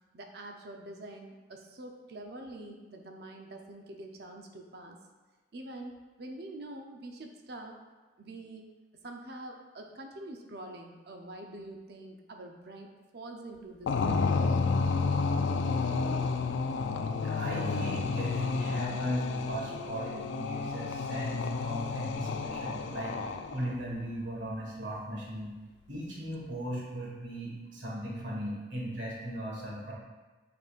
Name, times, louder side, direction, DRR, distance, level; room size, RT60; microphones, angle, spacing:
voice 1, 0.1-5.0 5.5-7.7 8.2-8.6 9.0-14.3, right 1 dB, 60° right, 3 dB, 0.6 m, -45 dB
sound 1, 13.9-23.7, left 4 dB, 85° left, 0.4 m, -31 dB
voice 2, 17.2-25.5 25.9-29.9, right 1 dB, 80° right, -4 dB, 1.7 m, -37 dB
7.6 x 5.3 x 2.5 m, 1.2 s
head